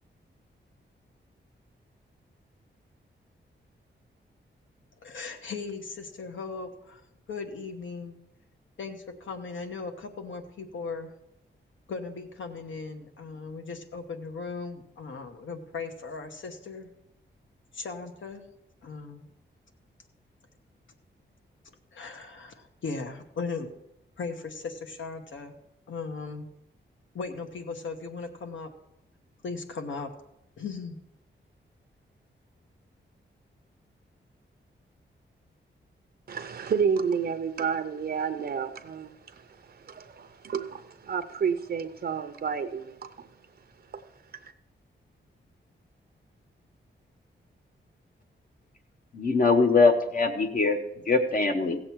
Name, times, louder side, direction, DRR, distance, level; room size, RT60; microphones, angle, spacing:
voice 1, 5.0-7.0 7.3-8.2 8.8-11.1 11.9-16.9 17.7-18.4 18.8-19.3 21.9-23.7 24.2-25.5 25.9-26.5 27.1-28.7 29.4-30.1 30.6-31.0, left 4 dB, 80° left, 5 dB, 1.2 m, -37 dB
voice 2, 36.3-43.3 43.9-44.0, right 6 dB, 55° right, 9 dB, 0.6 m, -30 dB
voice 3, 49.1-50.8 51.1-51.8, left 4 dB, 45° left, 5 dB, 0.8 m, -22 dB
16.0 x 7.7 x 4.6 m, 0.84 s
wide cardioid pair, 180°, 20 cm